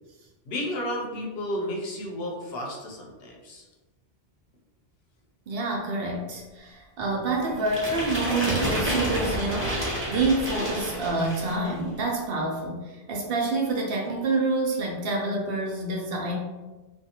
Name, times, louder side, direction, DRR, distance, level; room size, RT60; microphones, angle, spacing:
voice 1, 0.5-3.7, left 1 dB, 70° left, 0 dB, 0.8 m, -32 dB
voice 2, 5.5-16.4, right 2 dB, 65° right, -1 dB, 0.7 m, -27 dB
sound 1, 7.7-11.7, equal, 15° right, 0.7 m, -29 dB
2.5 x 2.3 x 2.8 m, 1.2 s
omnidirectional pair, 1.1 m